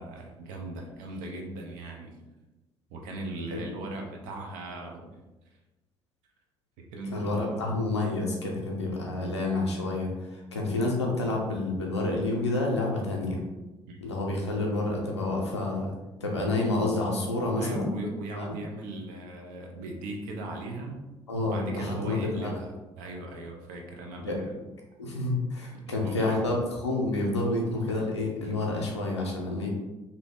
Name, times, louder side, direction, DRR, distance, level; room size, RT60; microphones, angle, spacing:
voice 1, 0.0-2.2 2.9-5.2 6.8-7.8 13.9-14.0 17.6-21.0 21.4-24.5 25.7-26.5, right 2 dB, 65° right, 1 dB, 0.7 m, -39 dB
voice 2, 7.1-13.4 14.0-15.9 16.2-18.0 18.3-18.5 21.3-22.6 24.2-24.4 25.0-29.7, left 2 dB, 85° left, -1 dB, 0.5 m, -29 dB
2.7 x 2.6 x 3.5 m, 1.1 s
figure-of-eight pair, 45°, 14 cm